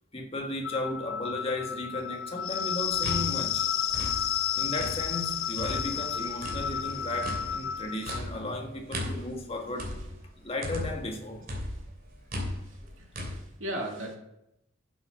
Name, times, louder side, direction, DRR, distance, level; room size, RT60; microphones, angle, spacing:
voice 1, 0.1-3.7 4.5-10.0 10.4-11.5, left 1 dB, 30° left, 1.5 m, -35 dB
sound 1, 0.6-8.2, left 9 dB, 80° left, 0.5 m, -31 dB
sound 2, 2.8-5.3 5.6-11.2 11.5-13.4, equal, 45° right, 2.8 m, -37 dB
sound 3, 3.8-10.9, equal, 10° right, 5.2 m, -50 dB
voice 2, 11.6-12.2 12.6-14.2, right 1 dB, 80° right, 2.4 m, -39 dB
12.0 x 7.2 x 5.7 m
head